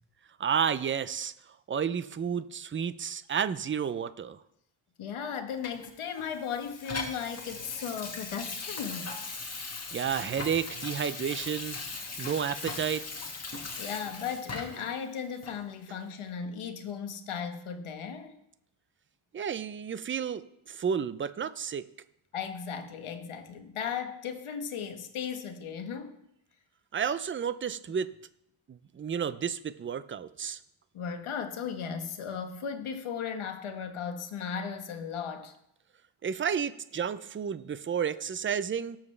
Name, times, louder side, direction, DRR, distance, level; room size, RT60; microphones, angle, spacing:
voice 1, 0.4-1.3 1.7-4.4 9.9-11.8 12.2-13.0 19.3-21.8 26.9-28.1 28.7-30.6 36.2-39.0, right 7 dB, 25° right, 14 dB, 0.4 m, -31 dB
voice 2, 5.0-9.1 13.8-18.4 22.3-26.2 30.9-35.5, left 7 dB, 80° left, 7 dB, 1.3 m, -36 dB
Water tap faucet / Sink (filling or washing), 5.6-14.9 15.4-15.6, left 3 dB, 30° left, 1.7 m, -39 dB
18.0 x 7.2 x 3.3 m, 0.77 s
wide cardioid pair, 110°, 49 cm